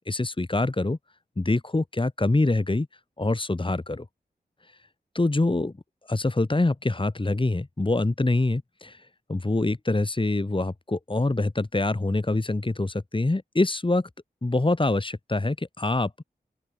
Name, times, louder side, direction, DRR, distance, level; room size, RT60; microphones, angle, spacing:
voice 1, 0.1-1.0 1.4-2.9 3.2-4.1 5.1-5.7 6.1-14.1 14.4-16.2, left 2 dB, 30° left, 2.6 m, -25 dB
open air
cardioid pair, 50°, 17 cm